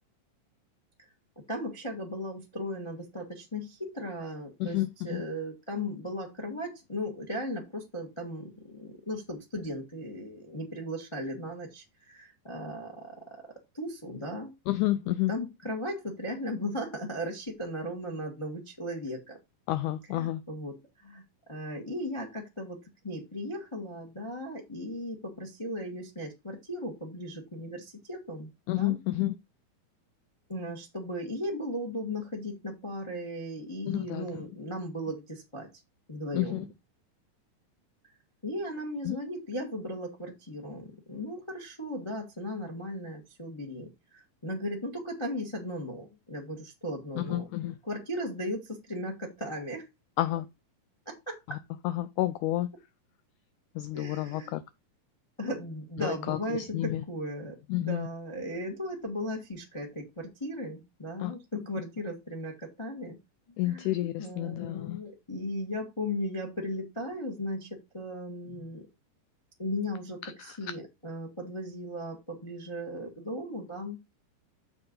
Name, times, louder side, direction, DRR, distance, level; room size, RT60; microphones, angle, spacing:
voice 1, 1.5-4.8 5.0-13.4 13.7-14.5 15.0-19.4 20.1-21.2 21.5-29.0 30.5-35.7 36.1-36.6 38.4-47.5 47.9-49.9 51.0-51.6 53.9-54.5 55.4-63.2 63.6-68.9 69.6-74.0, equal, 45° left, 0.3 m, -37 dB
voice 2, 4.6-5.2 14.7-15.3 19.7-20.4 28.7-29.4 33.9-34.4 36.3-36.7 39.1-39.2 47.2-47.8 50.2-50.5 51.5-51.6 51.8-52.7 53.8-54.6 56.0-57.0 57.7-58.1 61.2-61.3 63.6-65.0 70.2-70.7, left 15 dB, 85° left, 1.7 m, -30 dB
7.2 x 4.4 x 5.3 m
omnidirectional pair, 4.1 m